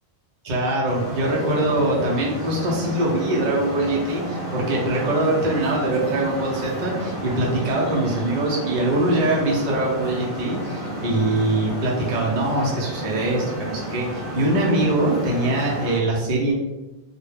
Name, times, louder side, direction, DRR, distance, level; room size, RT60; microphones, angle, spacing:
voice 1, 0.4-16.5, right 2 dB, 55° right, -3 dB, 0.6 m, -23 dB
Traffic noise roadway noise, 0.8-16.0, equal, 60° left, 0.8 m, -31 dB
2.2 x 2.1 x 3.1 m, 1.1 s
omnidirectional pair, 1.0 m